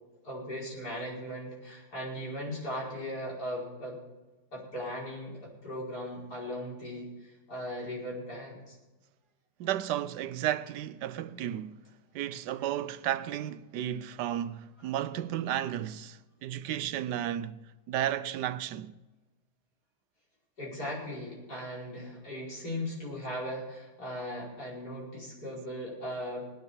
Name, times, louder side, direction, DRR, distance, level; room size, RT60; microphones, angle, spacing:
voice 1, 0.2-4.0 4.5-8.8 20.6-26.4, equal, 65° left, 5.8 m, -38 dB
voice 2, 9.6-11.8 12.1-17.6 17.9-18.9, right 11 dB, 80° right, 1.2 m, -33 dB
19.0 x 9.8 x 5.6 m
omnidirectional pair, 1.9 m